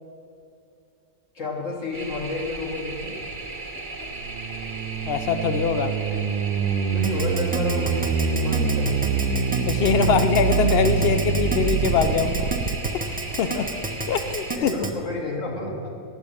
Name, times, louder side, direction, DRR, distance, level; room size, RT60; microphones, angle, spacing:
voice 1, 1.3-3.2 6.1-6.2 6.9-8.9 13.5-13.7 14.6-15.9, left 2 dB, 55° left, -2 dB, 2.4 m, -31 dB
sound 1, 1.9-14.6, right 3 dB, 35° right, 1.2 m, -36 dB
sound 2, 4.1-12.9, right 6 dB, 80° right, 1.1 m, -25 dB
voice 2, 5.1-5.9 9.7-12.5 12.9-13.5 14.1-14.7, left 6 dB, 80° left, 9 dB, 0.5 m, -23 dB
Keyboard (musical), 7.0-14.9, right 3 dB, 10° right, 0.5 m, -30 dB
9.6 x 8.1 x 8.7 m, 2.5 s
omnidirectional pair, 1.6 m